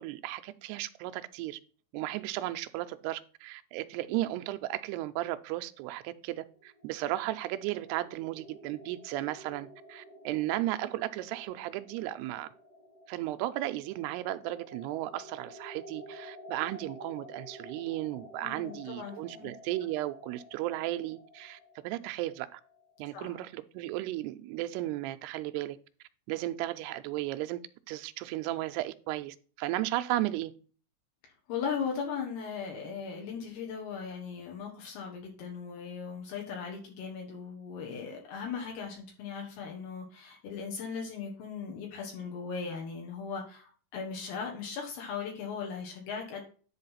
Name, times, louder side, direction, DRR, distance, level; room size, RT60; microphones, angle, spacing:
voice 1, 0.0-1.6 1.9-12.5 13.1-22.6 23.0-25.8 26.3-27.6 27.9-30.5, right 15 dB, 85° right, 2.6 m, -35 dB
sound 1, 6.3-23.1, equal, 40° left, 1.7 m, -51 dB
voice 2, 18.4-19.5 23.1-23.4 31.2-46.4, left 6 dB, 75° left, 3.5 m, -38 dB
10.5 x 3.8 x 5.6 m
omnidirectional pair, 4.7 m